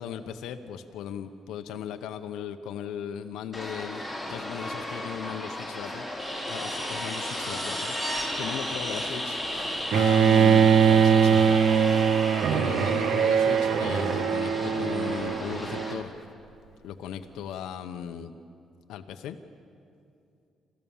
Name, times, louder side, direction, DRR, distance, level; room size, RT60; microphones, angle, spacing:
voice 1, 0.0-4.0 4.3-6.1 6.5-12.0 12.5-16.1 16.8-18.3 18.9-19.4, left 9 dB, 90° left, 7 dB, 0.8 m, -37 dB
sound 1, 3.5-15.9, left 1 dB, 5° left, 4.9 m, -36 dB
sound 2, 6.2-14.9 17.2-17.3, equal, 20° right, 6.3 m, -35 dB
Bowed string instrument, 9.9-16.0, right 7 dB, 75° right, 0.6 m, -22 dB
27.0 x 14.5 x 7.2 m, 2.5 s
cardioid pair, 90°, 0 cm